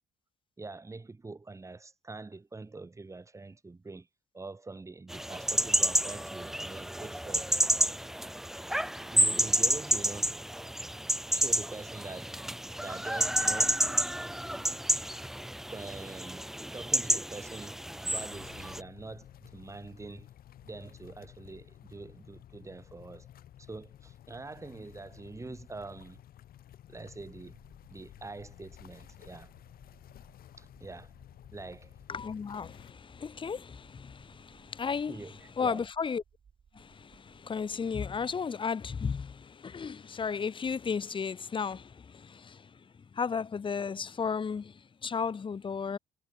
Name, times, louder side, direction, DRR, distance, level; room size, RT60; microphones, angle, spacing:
voice 1, 0.6-4.1 4.3-7.5 9.1-10.3 11.3-12.4 12.8-13.8 15.7-20.3 20.6-23.3 23.6-26.2 26.9-27.6 27.9-29.5 30.6-31.1 31.5-31.9 35.1-35.8, right 3 dB, 15° right, 3.8 m, -44 dB
sound 1, 5.1-18.8, equal, ahead, 0.7 m, -30 dB
sound 2, 18.3-32.9, left 11 dB, 60° left, 5.2 m, -53 dB
sound 3, 27.4-38.3, right 7 dB, 40° right, 6.5 m, -64 dB
voice 2, 32.1-35.2 35.6-36.2 36.7-42.8 43.1-46.0, left 6 dB, 30° left, 1.7 m, -34 dB
cardioid pair, 110°, 17 cm